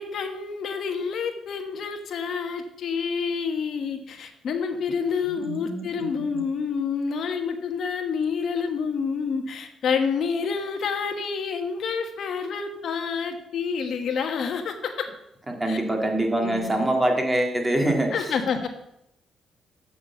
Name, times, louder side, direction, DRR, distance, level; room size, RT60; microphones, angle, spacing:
voice 1, 0.0-15.1 15.7-15.8 16.3-16.8 18.1-18.7, left 6 dB, 65° left, 6 dB, 1.3 m, -28 dB
voice 2, 5.2-6.4 15.5-18.1, right 1 dB, 15° right, 2 dB, 2.2 m, -25 dB
7.3 x 6.1 x 6.9 m, 0.82 s
cardioid pair, 90°, 0 cm